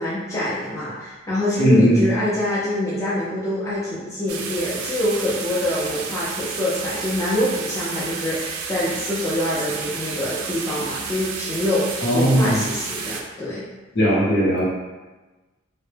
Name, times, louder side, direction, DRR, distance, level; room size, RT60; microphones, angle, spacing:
voice 1, 0.0-13.7, left 1 dB, 15° left, -9 dB, 0.4 m, -25 dB
voice 2, 1.6-2.0 12.0-12.6 13.9-14.6, equal, 55° left, -7 dB, 0.8 m, -17 dB
sound 1, 4.3-13.2, right 5 dB, 85° right, 0.3 m, -31 dB
2.1 x 2.0 x 3.2 m, 1.2 s
head